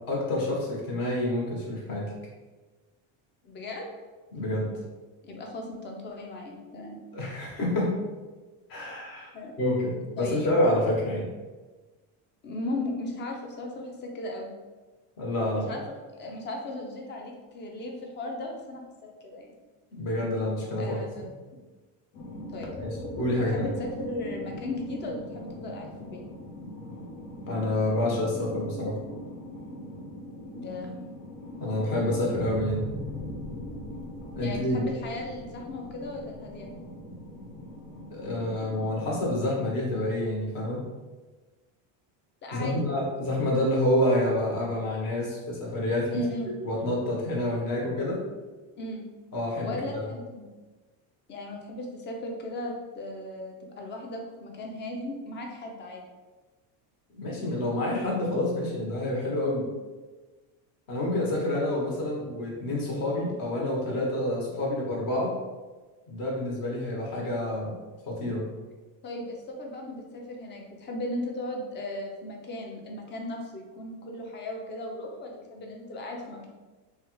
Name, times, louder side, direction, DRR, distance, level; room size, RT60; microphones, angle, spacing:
voice 1, 0.1-2.1 4.3-4.7 7.1-8.0 8.7-9.3 9.6-11.3 15.2-15.7 19.9-21.3 22.8-22.9 23.2-23.7 27.5-28.9 31.6-32.9 34.3-34.8 38.1-40.9 42.5-46.1 46.6-48.2 49.3-50.0 57.1-59.7 60.9-65.4 66.1-67.8 68.1-68.5, left 1 dB, 45° left, -3 dB, 1.1 m, -28 dB
voice 2, 3.4-3.9 5.2-7.0 9.3-9.5 10.2-10.5 12.4-14.5 15.5-15.8 16.1-19.5 20.8-21.3 22.5-22.7 23.3-26.2 30.5-31.1 34.4-36.7 42.4-42.8 46.1-46.5 48.8-49.1 49.6-50.5 51.3-56.0 69.0-76.5, left 2 dB, 25° left, 1 dB, 0.4 m, -36 dB
sound 1, 22.1-39.5, left 1 dB, 90° left, 0.7 m, -40 dB
3.2 x 2.4 x 3.0 m, 1.3 s
cardioid pair, 135°, 48 cm